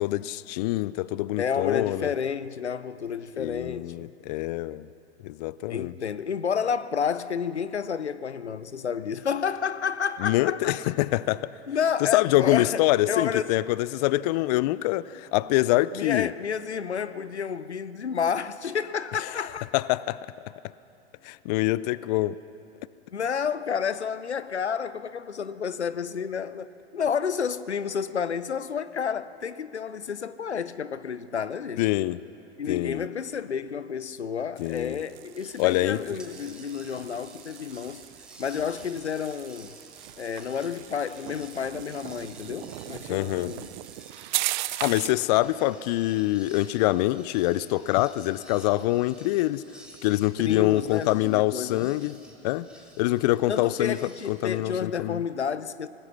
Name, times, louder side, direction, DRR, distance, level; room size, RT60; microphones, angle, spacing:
voice 1, 0.0-2.1 3.4-4.9 5.2-5.9 10.2-11.5 12.0-16.3 19.3-19.4 19.7-20.2 21.2-22.4 31.8-32.2 32.7-33.0 34.6-35.0 35.6-36.0 43.1-43.5 44.8-49.6 50.0-52.7 53.0-54.0 54.3-55.2, left 17 dB, 40° left, 0.4 m, -25 dB
voice 2, 1.4-4.1 5.7-10.8 11.7-12.8 13.1-13.5 15.9-19.6 23.1-31.8 32.6-38.0 38.4-39.8 40.2-43.7 50.4-51.9 53.5-55.9, left 7 dB, 90° left, 0.7 m, -30 dB
sound 1, 34.6-45.3, right 18 dB, 45° right, 0.6 m, -38 dB
sound 2, 35.3-35.9 36.2-54.6, right 1 dB, 5° right, 2.8 m, -53 dB
25.0 x 19.0 x 5.8 m
figure-of-eight pair, 100°, 33 cm